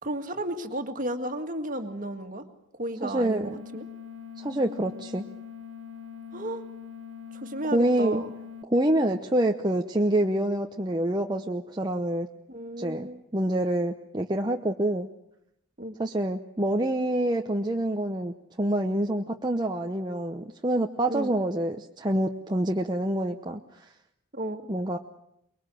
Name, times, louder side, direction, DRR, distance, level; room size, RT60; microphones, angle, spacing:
voice 1, 0.0-2.4 2.7-3.9 6.3-6.6 7.3-8.3 12.5-13.2 15.8-16.0 21.1-21.3 24.3-24.6, right 1 dB, 40° right, 7 dB, 1.9 m, -33 dB
voice 2, 3.0-3.6 4.4-5.2 7.7-8.2 8.7-12.3 12.8-15.1 16.0-23.9 24.7-25.0, right 1 dB, 20° right, 3 dB, 0.8 m, -27 dB
sound 1, 3.4-8.6, left 7 dB, 70° right, 1.2 m, -43 dB
24.0 x 22.5 x 7.7 m, 0.77 s
head